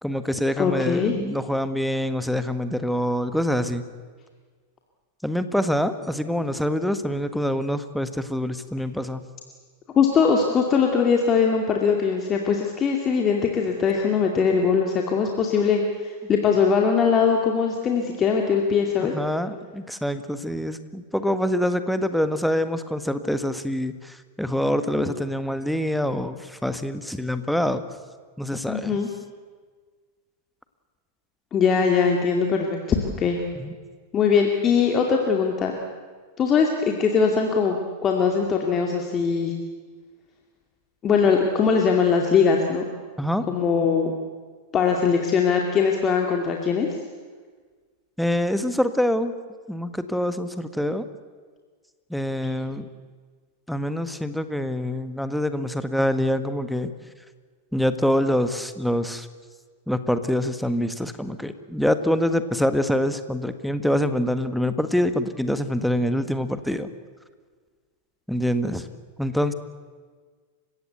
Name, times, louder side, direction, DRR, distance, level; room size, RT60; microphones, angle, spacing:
voice 1, 0.0-3.9 5.2-9.2 19.0-27.8 28.4-29.0 33.5-33.7 43.2-43.4 48.2-49.3 49.7-51.1 52.1-52.9 53.7-56.9 57.7-59.3 59.9-66.9 68.3-68.9 69.2-69.5, equal, ahead, 10 dB, 1.5 m, -25 dB
voice 2, 0.6-1.2 10.0-19.1 28.7-29.1 31.5-32.8 33.2-33.4 34.1-35.7 36.4-39.5 41.0-42.8 43.5-44.1 44.7-46.9 52.4-52.5, left 6 dB, 25° left, 2 dB, 2.4 m, -21 dB
29.0 x 16.5 x 8.2 m, 1.5 s
figure-of-eight pair, 90°, 0 cm